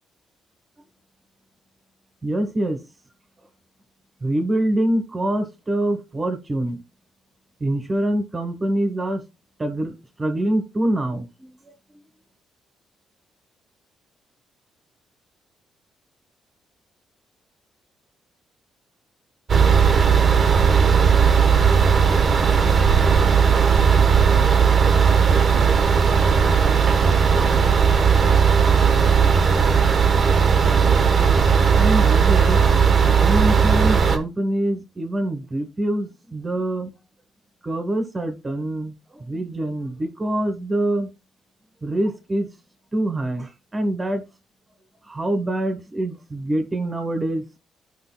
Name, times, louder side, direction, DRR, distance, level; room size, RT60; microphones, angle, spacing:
voice 1, 2.2-2.8 4.2-6.8 7.6-9.2 9.6-11.7 31.8-32.6 33.2-36.9 37.6-41.1 41.8-42.5 42.9-44.2 45.0-47.5, right 1 dB, 25° right, 1.5 m, -25 dB
sound 1, 19.5-34.2, right 6 dB, 50° right, 1.3 m, -16 dB
14.0 x 5.2 x 2.2 m
cardioid pair, 90°, 0 cm